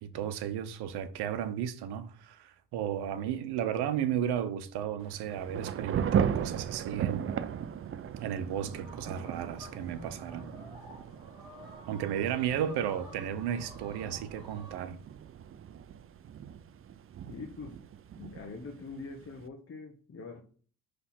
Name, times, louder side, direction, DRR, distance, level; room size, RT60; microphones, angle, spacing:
voice 1, 0.0-7.5 8.2-10.5 11.9-15.0, right 9 dB, 70° right, 0.9 m, -34 dB
Thunder / Rain, 5.0-19.5, right 8 dB, 35° right, 0.5 m, -37 dB
sound 1, 8.7-14.7, equal, 10° right, 2.8 m, -51 dB
voice 2, 17.3-17.8 18.2-20.4, left 4 dB, 35° left, 1.1 m, -43 dB
5.7 x 3.4 x 5.8 m
supercardioid pair, 65°, 41 cm